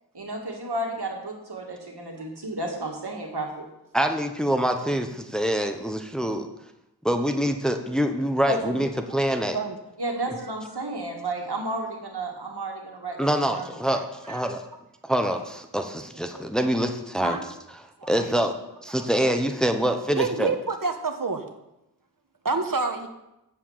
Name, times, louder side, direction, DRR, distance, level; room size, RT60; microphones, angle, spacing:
voice 1, 0.1-3.6 8.5-8.8 10.0-13.7, right 1 dB, 80° right, 0 dB, 2.2 m, -32 dB
voice 2, 3.9-6.5 7.0-9.6 13.2-14.6 15.1-17.4 18.1-18.5 18.8-20.5, equal, ahead, 6 dB, 1.0 m, -25 dB
voice 3, 13.9-14.5 16.3-16.4 17.2-17.4 18.0-18.2 18.9-19.1 20.2-21.4 22.4-23.1, right 4 dB, 55° right, 6 dB, 1.4 m, -29 dB
8.3 x 7.5 x 7.3 m, 0.91 s
wide cardioid pair, 40°, 39 cm